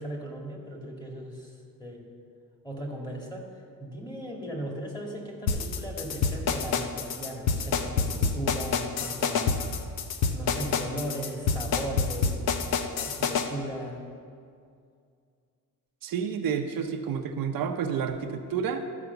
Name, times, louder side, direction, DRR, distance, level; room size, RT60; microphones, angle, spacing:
voice 1, 0.0-1.5 1.8-2.0 2.6-3.5 3.8-9.8 10.3-14.0, right 1 dB, 10° left, 0 dB, 1.9 m, -37 dB
sound 1, 5.5-13.5, left 5 dB, 90° left, 0.8 m, -27 dB
voice 2, 16.0-18.9, right 7 dB, 70° right, 5 dB, 0.8 m, -30 dB
13.0 x 5.0 x 6.9 m, 2.3 s
cardioid pair, 120°, 36 cm